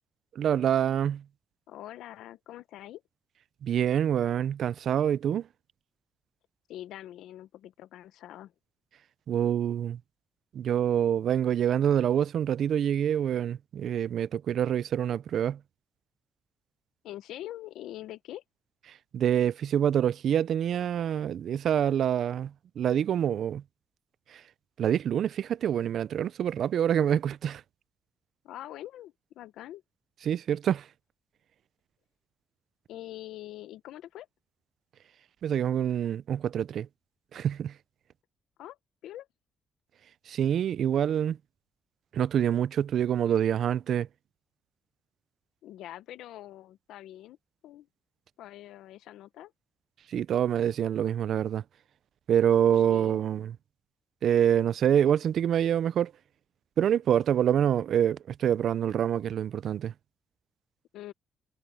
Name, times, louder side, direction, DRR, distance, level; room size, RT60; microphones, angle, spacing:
voice 1, 0.4-1.2 3.6-5.5 9.3-10.0 10.5-15.6 19.1-23.6 24.3-24.4 24.8-27.6 30.3-30.9 35.4-36.9 37.3-37.7 40.3-41.4 42.1-44.1 50.1-51.6 52.3-53.5 54.2-56.1 56.8-59.9, right 9 dB, 65° right, 0.5 m, -26 dB
voice 2, 1.7-3.0 6.7-8.5 17.0-18.4 28.4-29.8 32.9-34.3 38.6-38.8 39.0-39.3 45.6-47.4 47.6-47.9 48.4-49.5 52.9-53.2 60.9-61.1, left 13 dB, 85° left, 0.9 m, -44 dB
cardioid pair, 90°, 0 cm